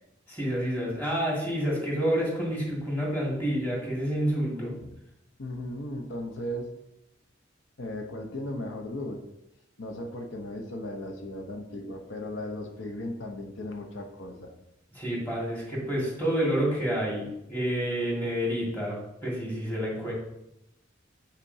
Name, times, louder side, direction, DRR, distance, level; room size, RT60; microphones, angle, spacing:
voice 1, 0.3-4.7 15.0-20.1, equal, 10° left, -4 dB, 1.9 m, -29 dB
voice 2, 4.5-4.9 5.4-6.7 7.8-9.2 9.8-14.5, left 1 dB, 85° left, 3 dB, 0.8 m, -36 dB
8.4 x 4.3 x 2.7 m, 0.86 s
head